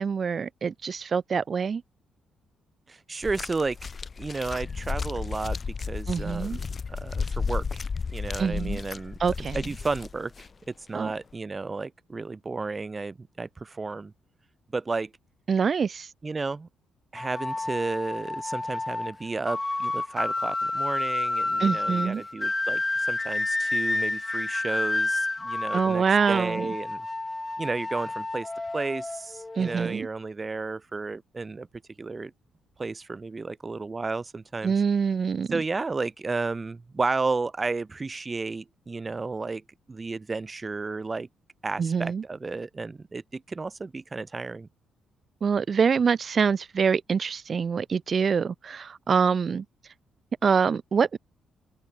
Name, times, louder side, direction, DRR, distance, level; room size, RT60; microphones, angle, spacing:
voice 1, 0.0-1.8 6.1-6.6 8.4-8.8 9.2-9.6 10.9-11.1 15.5-16.1 21.6-22.2 25.7-26.7 29.6-30.1 34.6-35.5 41.8-42.2 45.4-49.6 50.4-51.2, right 6 dB, 45° right, 2.2 m, -25 dB
voice 2, 2.9-3.8 4.2-7.8 8.1-9.2 9.5-14.1 14.7-15.1 16.2-16.7 17.1-27.0 27.6-31.7 32.0-32.3 32.8-34.7 35.5-39.6 39.9-41.3 41.6-44.7, right 3 dB, 25° right, 4.5 m, -32 dB
sound 1, 3.2-10.5 11.3-11.4, left 5 dB, 35° left, 6.4 m, -33 dB
sound 2, 17.2-30.0, left 2 dB, 15° left, 4.8 m, -30 dB
open air
cardioid pair, 90°, 0 cm